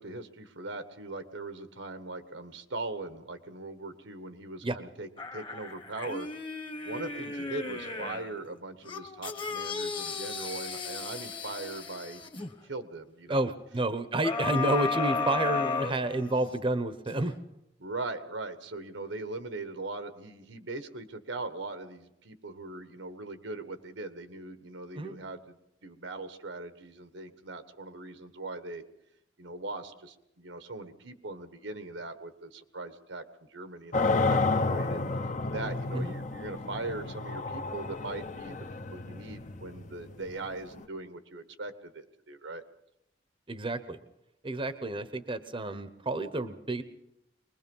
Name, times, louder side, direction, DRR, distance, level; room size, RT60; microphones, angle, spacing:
voice 1, 0.0-6.3 6.8-12.2 12.6-13.4 17.8-25.6 25.8-28.8 29.4-33.2 33.5-35.0 35.5-38.6 38.9-42.6, right 2 dB, 90° right, 10 dB, 1.5 m, -40 dB
sound 1, 5.2-8.3 8.9-12.5 14.2-16.6 17.1-17.2, left 4 dB, 25° left, 1.3 m, -34 dB
voice 2, 13.3-17.3 24.9-25.1 35.9-36.1 43.5-44.0 44.4-46.8, right 2 dB, 30° right, 11 dB, 0.9 m, -30 dB
sound 2, 33.9-40.8, left 3 dB, 40° left, 0.9 m, -31 dB
23.5 x 20.5 x 5.5 m, 0.85 s
head